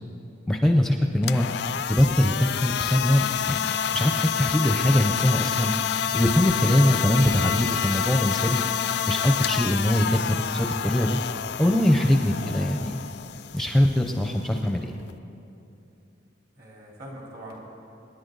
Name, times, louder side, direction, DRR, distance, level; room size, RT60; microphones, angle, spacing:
voice 1, 0.5-1.5 1.9-5.7 6.1-8.6 9.1-11.2 11.6-13.0 13.5-14.9, left 1 dB, ahead, 3 dB, 0.6 m, -22 dB
sound 1, 1.1-15.2, left 8 dB, 55° left, 0.4 m, -28 dB
voice 2, 16.6-17.6, right 1 dB, 50° right, -3 dB, 3.6 m, -43 dB
27.0 x 10.5 x 4.0 m, 2.8 s
head